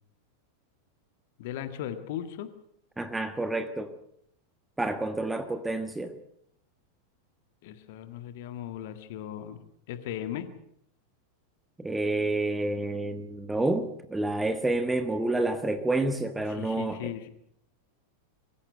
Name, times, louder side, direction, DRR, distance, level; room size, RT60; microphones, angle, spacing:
voice 1, 1.4-2.5 7.6-10.5 16.5-17.3, left 11 dB, 50° left, 9 dB, 1.8 m, -37 dB
voice 2, 3.0-3.9 4.8-6.2 11.8-17.0, right 2 dB, 5° right, 9 dB, 1.5 m, -29 dB
24.0 x 15.5 x 8.0 m, 0.71 s
figure-of-eight pair, 90°, 0 cm